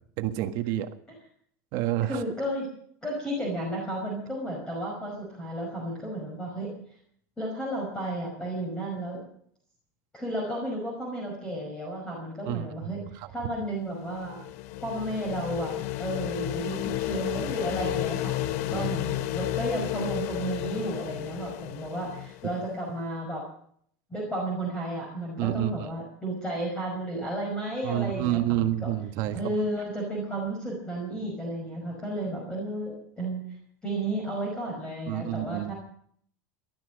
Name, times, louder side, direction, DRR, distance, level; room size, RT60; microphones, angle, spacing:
voice 1, 0.2-0.9 1.7-2.2 12.4-12.9 13.2-13.3 18.7-18.9 25.4-25.9 27.8-29.5 35.1-35.7, right 14 dB, 50° right, 7 dB, 1.5 m, -29 dB
voice 2, 2.0-2.7 3.0-6.7 7.4-9.3 10.1-13.0 13.3-14.4 14.8-23.4 24.1-28.9 29.3-33.4 33.8-35.7, right 1 dB, 10° left, -2 dB, 5.4 m, -33 dB
sound 1, 13.9-22.7, left 15 dB, 60° left, 0.8 m, -32 dB
19.5 x 12.5 x 5.3 m, 0.63 s
supercardioid pair, 150°, 9 cm